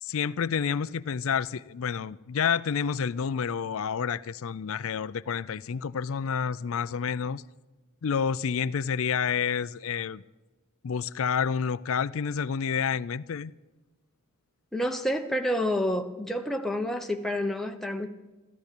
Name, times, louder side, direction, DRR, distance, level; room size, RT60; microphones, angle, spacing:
voice 1, 0.0-7.4 8.0-10.2 10.8-13.5, left 6 dB, 70° left, 0.4 m, -29 dB
voice 2, 14.7-18.1, equal, ahead, 1.0 m, -29 dB
14.5 x 13.0 x 6.8 m
head